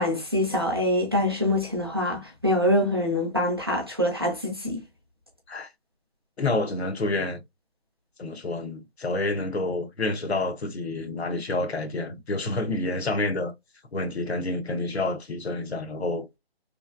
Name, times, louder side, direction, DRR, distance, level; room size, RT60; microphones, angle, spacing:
voice 1, 0.0-4.8, left 1 dB, 25° right, 0.5 m, -25 dB
voice 2, 6.4-7.4 8.2-13.5 13.9-16.3, left 2 dB, 85° left, 0.9 m, -28 dB
3.1 x 2.3 x 2.4 m
figure-of-eight pair, 170°, 31 cm